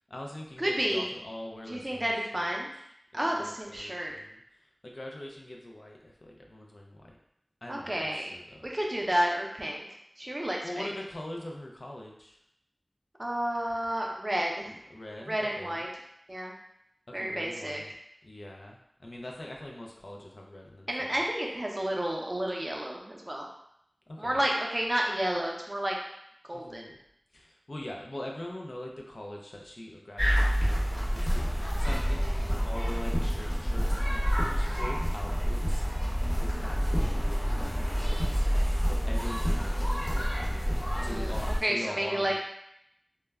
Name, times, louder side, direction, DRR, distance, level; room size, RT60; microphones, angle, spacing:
voice 1, 0.1-2.5 3.1-7.2 7.6-8.7 10.6-12.4 14.7-15.8 17.1-17.9 18.2-21.1 24.1-24.5 26.5-26.9 27.3-35.8 36.3-38.5 38.8-42.3, left 1 dB, 75° left, 0 dB, 0.4 m, -43 dB
voice 2, 0.6-1.1 1.7-2.7 3.1-4.1 7.7-8.3 8.6-9.9 10.2-10.9 13.2-14.8 15.2-15.9 16.3-16.5 17.1-17.8 20.9-23.5 24.2-26.0 26.4-26.9 41.0-42.3, right 1 dB, 40° right, -1 dB, 0.5 m, -31 dB
sound 1, 30.2-41.6, equal, 30° left, 1.0 m, -28 dB
2.1 x 2.1 x 3.4 m, 0.77 s
wide cardioid pair, 50°, 0 cm